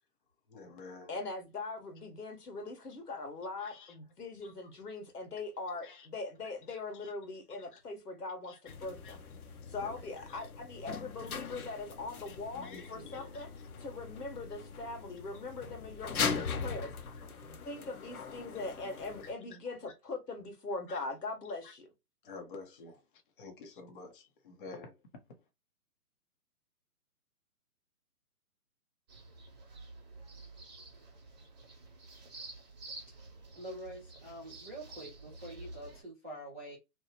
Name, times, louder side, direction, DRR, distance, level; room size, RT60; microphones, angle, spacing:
voice 1, 0.5-1.2 3.6-4.0 4.4-4.5 5.8-6.1 6.7-7.1 7.5-7.8 8.5-8.7 9.0-9.2 9.6-10.5 11.5-11.6 12.2-13.7 15.3-15.5 17.2-17.3 19.2-19.6 20.9-21.0 21.6-21.7 22.2-25.5, left 4 dB, 35° left, 0.6 m, -51 dB
voice 2, 1.1-9.2 9.7-13.5 13.8-16.9 17.2-21.9, left 3 dB, 90° left, 1.3 m, -41 dB
sound 1, 8.7-19.3, left 5 dB, 70° left, 0.8 m, -40 dB
sound 2, 29.1-36.0, right 2 dB, 30° right, 0.8 m, -50 dB
voice 3, 33.6-36.8, right 1 dB, 10° right, 0.4 m, -46 dB
2.8 x 2.0 x 2.8 m
figure-of-eight pair, 140°, 46 cm